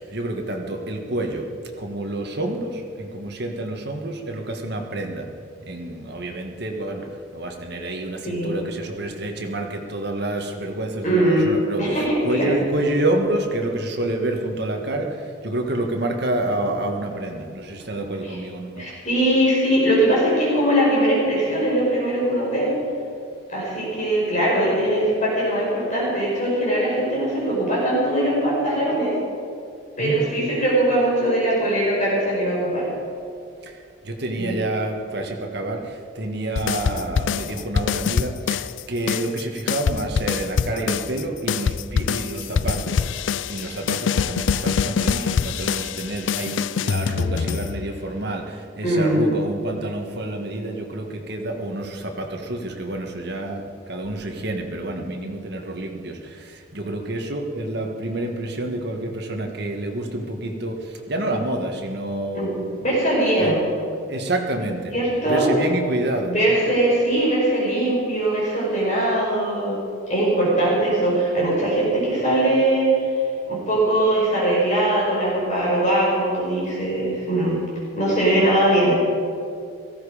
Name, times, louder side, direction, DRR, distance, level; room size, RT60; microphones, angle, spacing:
voice 1, 0.0-1.5 1.8-5.3 5.7-7.1 7.3-11.8 12.2-15.2 15.4-18.9 30.0-30.2 33.6-33.7 34.0-38.6 38.9-43.0 43.5-62.5 63.4-63.5 64.1-64.9 65.3-66.3, right 1 dB, 50° right, 3 dB, 1.7 m, -28 dB
voice 2, 8.2-8.6 11.0-11.5 11.8-12.6 18.2-18.4 18.8-22.7 23.5-29.1 30.0-32.9 34.4-34.6 48.8-49.3 62.4-63.7 64.9-65.5 66.2-69.8 70.1-72.9 73.5-77.6 78.0-79.0, right 1 dB, 35° left, -5 dB, 5.4 m, -21 dB
sound 1, 36.6-38.8 39.1-48.1, left 6 dB, 65° left, 0.4 m, -24 dB
17.5 x 15.5 x 5.1 m, 2.4 s
head